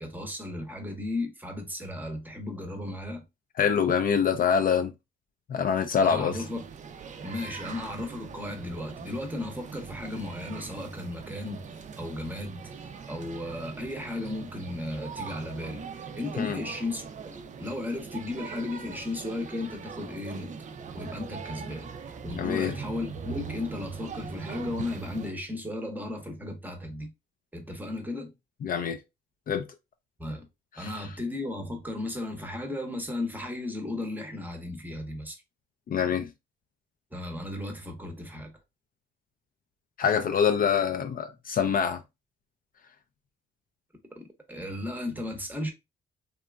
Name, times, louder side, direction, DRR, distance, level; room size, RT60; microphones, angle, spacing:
voice 1, 0.0-3.2 6.0-6.6 7.2-20.5 20.9-27.1 27.5-28.3 30.2-30.5 30.8-35.4 37.1-38.5 44.1-44.2 44.5-45.7, left 2 dB, 10° right, 0.8 m, -35 dB
voice 2, 3.6-4.9 5.5-6.4 16.4-16.6 22.4-22.7 28.6-29.0 29.5-29.7 30.8-31.0 35.9-36.3 40.0-42.0, left 7 dB, 45° left, 0.4 m, -25 dB
sound 1, 6.3-25.3, right 6 dB, 40° right, 0.4 m, -41 dB
2.9 x 2.3 x 2.2 m
cardioid pair, 90°, 20 cm